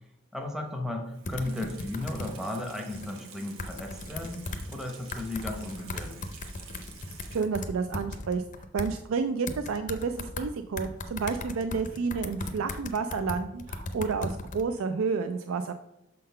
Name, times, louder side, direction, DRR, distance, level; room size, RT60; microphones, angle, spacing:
voice 1, 0.3-6.3, left 1 dB, ahead, 2 dB, 0.8 m, -35 dB
Water tap faucet / Sink (filling or washing), 1.1-7.8 8.2-8.3, right 5 dB, 85° right, 1.0 m, -50 dB
sound 1, 1.3-2.3 2.9-3.1 3.6-4.8 5.1-8.9 9.5-10.5 10.8-14.6, left 2 dB, 35° left, 0.5 m, -37 dB
voice 2, 7.3-8.4 8.7-15.7, right 5 dB, 70° right, 9 dB, 0.4 m, -30 dB
6.5 x 3.8 x 5.5 m, 0.87 s
head